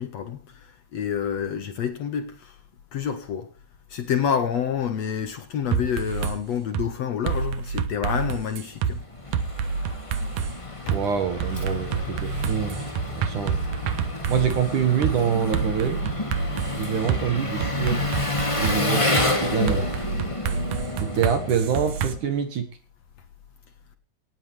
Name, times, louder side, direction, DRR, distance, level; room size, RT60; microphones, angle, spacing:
voice 1, 0.0-2.6 2.9-3.5 3.9-9.0 10.9-11.0 12.3-12.5, left 8 dB, 70° left, 1.6 m, -28 dB
sound 1, 5.7-6.4 6.7-6.9 7.3-8.9 9.3-10.5 10.9-11.0 11.4-14.6 15.0-15.2 15.5-17.2 17.6-18.8 19.2-19.3 19.7-22.1, right 6 dB, 90° right, 1.6 m, -27 dB
Engine, 8.7-22.3, left 2 dB, 15° left, 1.0 m, -29 dB
voice 2, 10.9-12.9 13.2-13.6 14.3-16.0 16.7-18.0 18.6-19.1 19.4-19.9 21.0-22.7, right 7 dB, 55° right, 2.6 m, -25 dB
19.0 x 15.5 x 3.4 m
omnidirectional pair, 5.3 m